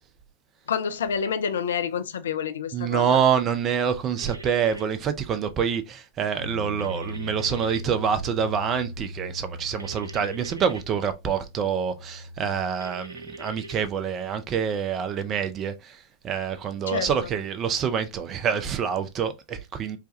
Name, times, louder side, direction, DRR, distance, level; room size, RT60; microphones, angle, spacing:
voice 1, 0.7-3.2 16.9-17.1, left 7 dB, 65° left, 0.4 m, -28 dB
voice 2, 2.7-20.0, right 7 dB, 30° right, 0.6 m, -26 dB
sound 1, 4.2-4.8 6.8-7.8 9.8-10.8 12.8-13.8, right 2 dB, 80° right, 0.4 m, -42 dB
Bass guitar, 6.4-12.6, equal, 85° left, 1.3 m, -39 dB
4.6 x 2.2 x 2.6 m
figure-of-eight pair, 90°, 0 cm